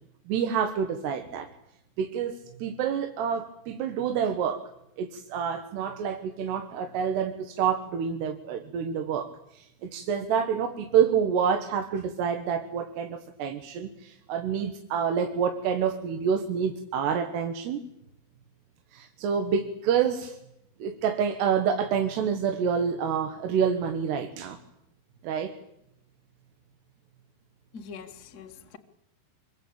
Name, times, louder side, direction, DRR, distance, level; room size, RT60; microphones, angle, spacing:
voice 1, 0.3-1.5 2.0-4.7 5.0-17.8 18.9-20.4 20.8-24.6 25.2-25.5, right 7 dB, 80° right, 5 dB, 3.6 m, -28 dB
voice 2, 27.7-28.8, left 5 dB, 45° left, 4 dB, 1.2 m, -43 dB
26.0 x 23.5 x 8.7 m, 0.81 s
omnidirectional pair, 4.7 m